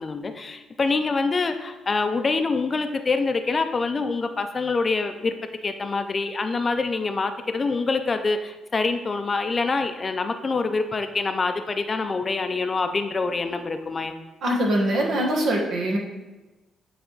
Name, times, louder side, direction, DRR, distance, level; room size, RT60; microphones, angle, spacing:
voice 1, 0.0-5.3 5.6-14.2, left 4 dB, 35° left, 8 dB, 0.5 m, -25 dB
voice 2, 14.4-16.0, right 1 dB, 70° right, 0 dB, 1.4 m, -23 dB
9.4 x 3.4 x 3.9 m, 1.1 s
cardioid pair, 90°, 0 cm